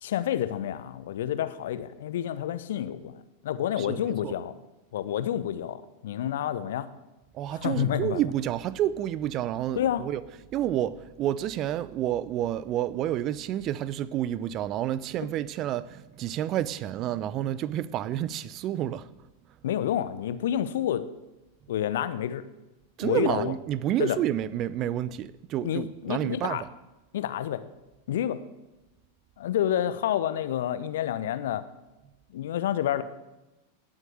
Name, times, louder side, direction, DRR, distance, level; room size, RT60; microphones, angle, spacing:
voice 1, 0.0-4.5 4.9-6.9 7.6-8.2 9.8-10.0 19.6-21.1 21.7-22.5 23.0-23.5 24.0-24.2 25.6-26.6 27.1-27.6 28.1-28.4 29.4-31.6 32.3-33.0, left 11 dB, 60° left, 1.0 m, -29 dB
voice 2, 3.8-4.3 7.3-10.2 10.5-19.1 23.0-26.6, right 12 dB, 35° right, 0.6 m, -29 dB
17.0 x 7.8 x 7.9 m
figure-of-eight pair, 90°, 0 cm